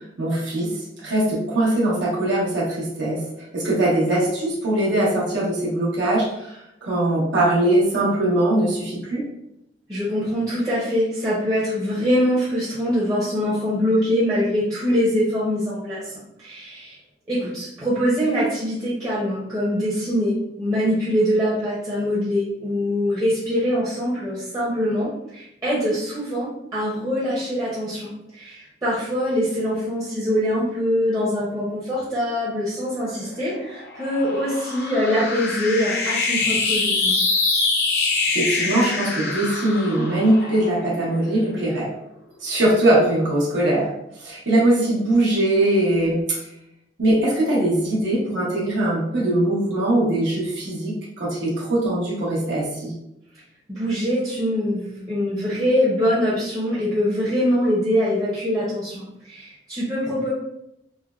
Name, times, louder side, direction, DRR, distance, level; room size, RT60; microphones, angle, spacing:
voice 1, 0.2-3.2 3.5-9.2 38.3-41.9 42.4-43.9 44.1-46.4 47.0-52.9, right 1 dB, 85° right, -6 dB, 1.0 m, -21 dB
voice 2, 9.9-16.1 16.4-17.0 17.3-37.2 53.7-60.3, equal, 20° right, -10 dB, 0.6 m, -23 dB
sound 1, 33.1-41.7, left 3 dB, 60° left, 0.4 m, -25 dB
3.2 x 2.0 x 2.3 m, 0.83 s
head